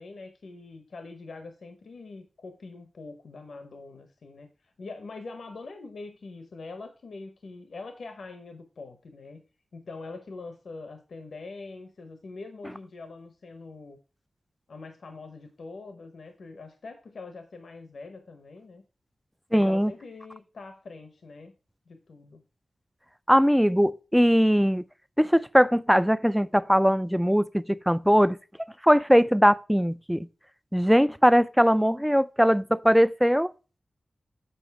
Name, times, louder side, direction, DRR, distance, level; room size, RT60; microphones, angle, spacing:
voice 1, 0.0-9.4 9.7-14.0 14.7-18.8 19.5-21.5 21.9-22.4, left 3 dB, 85° left, 0.9 m, -43 dB
voice 2, 19.5-19.9 23.3-24.8 25.2-28.4 28.8-30.3 30.7-33.5, equal, ahead, 0.3 m, -21 dB
7.9 x 4.8 x 4.6 m
wide cardioid pair, 105°, 0 cm